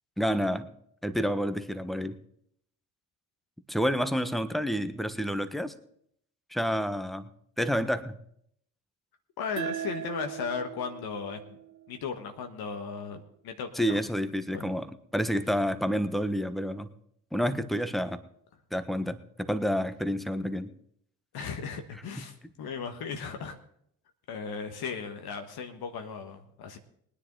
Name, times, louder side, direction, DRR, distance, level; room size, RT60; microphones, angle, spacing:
voice 1, 0.2-0.7 1.0-2.2 3.7-5.7 6.5-7.3 7.6-8.2 13.8-16.9 17.3-18.2 18.7-20.7 22.2-22.3, equal, ahead, 12 dB, 1.3 m, -29 dB
voice 2, 9.4-11.6 11.9-14.0 14.5-14.7 21.3-23.6 24.3-26.8, left 6 dB, 60° left, 5 dB, 1.5 m, -36 dB
sound 1, 9.6-12.8, right 10 dB, 45° right, 0.8 m, -39 dB
22.0 x 9.9 x 4.0 m, 0.69 s
hypercardioid pair, 40°, 41 cm